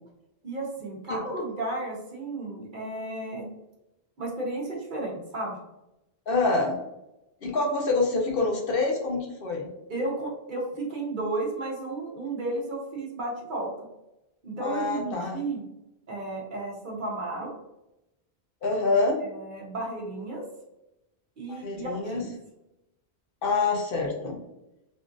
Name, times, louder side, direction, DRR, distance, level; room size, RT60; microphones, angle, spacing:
voice 1, 0.4-3.5 4.2-5.6 9.9-13.7 14.4-15.7 16.1-17.5 19.2-20.5 21.4-22.3, right 2 dB, 55° right, -2 dB, 1.0 m, -33 dB
voice 2, 6.3-6.8 7.4-9.7 14.6-15.4 18.6-19.2 21.5-22.2 23.4-24.4, left 3 dB, 65° left, 0 dB, 0.8 m, -26 dB
3.6 x 2.4 x 2.5 m, 0.92 s
omnidirectional pair, 1.1 m